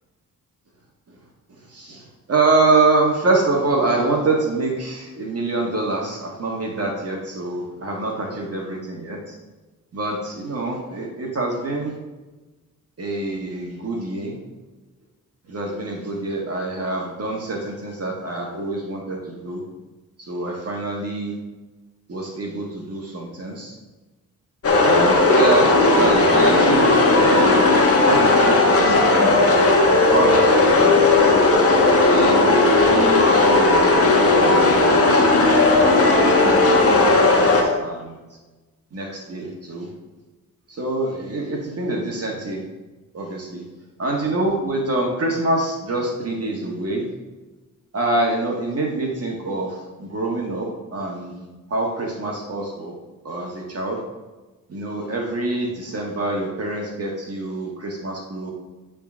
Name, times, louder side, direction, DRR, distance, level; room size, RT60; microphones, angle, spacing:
voice 1, 1.7-9.4 9.9-12.0 13.0-14.4 15.5-19.6 20.2-21.4 22.1-23.8 24.8-27.8 28.0-29.5 29.9-31.3 32.1-35.0 35.8-38.2 38.9-39.9 40.7-42.6 43.1-43.6 44.0-47.0 47.9-52.9 53.2-54.0 54.7-58.5, right 2 dB, 45° right, -1 dB, 1.5 m, -25 dB
sound 1, 24.6-37.6, left 2 dB, 45° left, 1.3 m, -16 dB
10.0 x 3.8 x 6.1 m, 1.2 s
wide cardioid pair, 125°, 34 cm